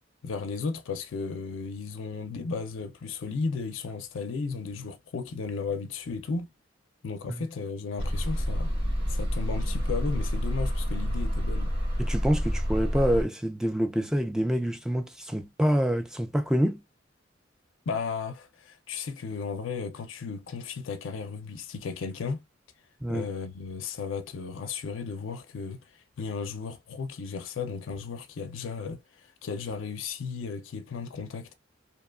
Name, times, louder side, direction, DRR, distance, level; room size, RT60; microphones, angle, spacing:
voice 1, 0.2-6.5 7.0-8.7 9.1-11.7 17.9-22.4 23.1-31.5, left 5 dB, 85° left, 0.4 m, -35 dB
sound 1, 8.0-13.2, equal, 55° right, 1.5 m, -28 dB
voice 2, 12.0-16.8 23.0-23.3, equal, 5° right, 0.3 m, -26 dB
2.7 x 2.2 x 2.3 m
head